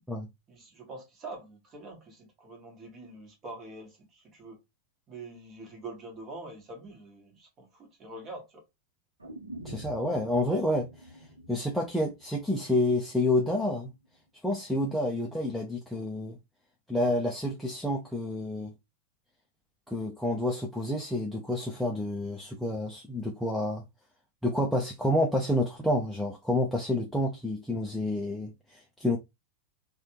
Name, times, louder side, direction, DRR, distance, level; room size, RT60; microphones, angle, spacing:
voice 1, 0.5-4.6 5.1-8.6, right 2 dB, 30° right, 1.4 m, -45 dB
sound 1, 9.2-13.2 13.5-13.6, equal, 75° right, 0.8 m, -47 dB
voice 2, 9.6-11.1 11.5-13.9 14.4-16.4 16.9-18.7 19.9-23.8 24.4-29.2, left 1 dB, ahead, 0.5 m, -29 dB
3.2 x 2.4 x 2.9 m
figure-of-eight pair, 90°, 0 cm